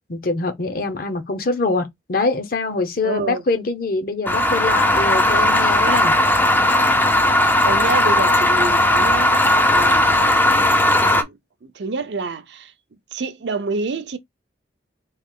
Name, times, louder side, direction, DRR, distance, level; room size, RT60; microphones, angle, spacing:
voice 1, 0.1-6.1, left 3 dB, 50° left, 0.6 m, -24 dB
voice 2, 3.0-3.4 5.8-6.1 6.9-7.0 7.6-12.7 13.1-14.2, right 4 dB, 70° right, 0.6 m, -28 dB
sound 1, 4.3-11.2, left 1 dB, 10° left, 0.3 m, -17 dB
3.1 x 2.4 x 3.6 m
head